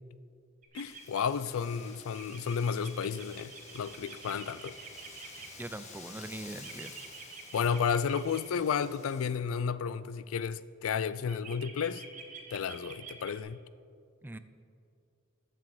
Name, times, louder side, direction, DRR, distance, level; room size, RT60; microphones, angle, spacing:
sound 1, 0.6-5.5 6.6-8.4 11.3-13.4, right 6 dB, 40° right, 1.4 m, -48 dB
voice 1, 0.7-4.8 7.5-12.0 12.5-13.6, left 6 dB, 75° left, 0.4 m, -32 dB
Wind, 0.9-9.3, left 3 dB, 35° left, 1.5 m, -52 dB
voice 2, 5.6-6.9 14.2-14.4, right 1 dB, 10° right, 0.4 m, -41 dB
11.0 x 6.8 x 7.7 m
head